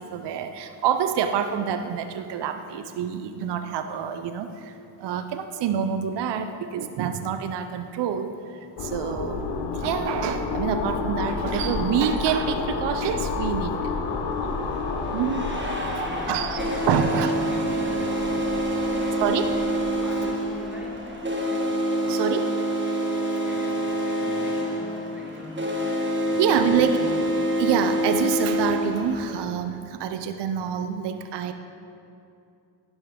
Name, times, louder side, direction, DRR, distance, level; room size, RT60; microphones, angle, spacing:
voice 1, 0.0-9.4 9.7-14.0 15.1-15.5 16.0-16.6 16.9-17.3 19.2-19.5 22.0-22.5 26.1-27.2 27.6-31.5, right 8 dB, 60° right, 8 dB, 0.6 m, -27 dB
sound 1, 8.8-21.3, left 4 dB, 80° left, 0.8 m, -31 dB
sound 2, 13.2-13.3 14.3-29.3, right 1 dB, 25° right, 1.4 m, -27 dB
voice 2, 15.8-18.4 18.9-19.7 20.0-21.2 23.4-25.9 26.2-27.2, equal, 5° right, -1 dB, 1.4 m, -42 dB
11.0 x 5.2 x 3.7 m, 2.6 s
supercardioid pair, 55°, 46 cm